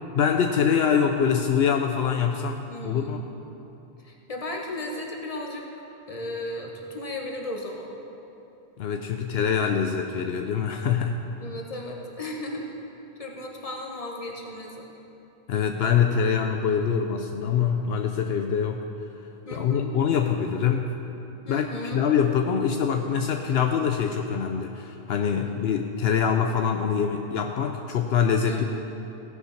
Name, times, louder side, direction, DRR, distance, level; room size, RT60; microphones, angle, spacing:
voice 1, 0.1-3.3 8.8-11.2 15.5-18.9 19.5-20.9 21.5-21.7 21.9-28.6, left 7 dB, 75° left, 4 dB, 0.8 m, -24 dB
voice 2, 2.7-3.2 4.0-5.7 6.1-7.9 11.4-12.7 13.2-14.8 19.4-20.0 21.4-22.0 25.4-25.5 28.5-28.6, left 1 dB, 35° left, 0 dB, 1.3 m, -35 dB
16.5 x 6.1 x 5.7 m, 2.9 s
omnidirectional pair, 1.1 m